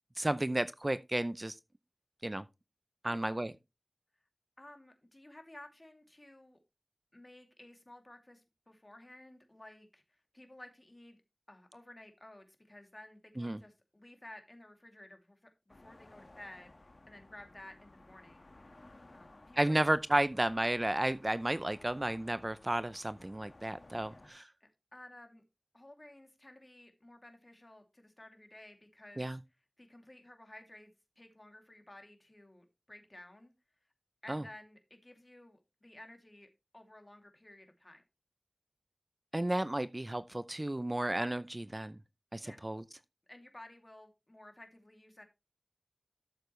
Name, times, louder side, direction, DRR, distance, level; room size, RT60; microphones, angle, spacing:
voice 1, 0.2-1.6 2.2-2.4 3.0-3.5 13.4-13.6 19.6-24.5 29.2-29.4 34.3-34.4 39.3-42.0 42.3-42.8, right 1 dB, 35° right, 0.6 m, -33 dB
voice 2, 3.0-3.4 4.6-6.6 7.1-11.2 11.5-18.5 19.1-19.8 20.5-20.6 24.1-24.3 24.6-25.4 25.7-29.3 29.8-30.9 31.2-33.5 34.2-36.5 36.7-38.0 42.4-42.6 43.3-45.2, left 1 dB, 40° left, 2.7 m, -54 dB
sound 1, 15.7-24.3, left 2 dB, 70° left, 1.6 m, -58 dB
13.0 x 6.8 x 3.2 m
wide cardioid pair, 50°, 0 cm